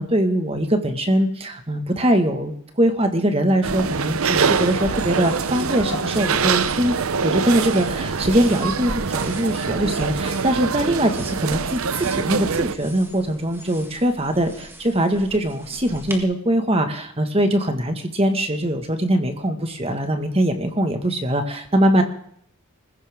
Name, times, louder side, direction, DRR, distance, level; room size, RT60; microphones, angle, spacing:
voice 1, 0.0-7.0 7.2-22.0, right 1 dB, 25° right, 6 dB, 1.8 m, -22 dB
sound 1, 3.6-12.7, right 5 dB, 75° right, 0.7 m, -24 dB
sound 2, 3.9-16.2, right 1 dB, 10° right, 1.8 m, -41 dB
Waves surf, 4.8-10.0, left 2 dB, 80° left, 5.0 m, -42 dB
20.5 x 15.5 x 3.7 m, 0.65 s
head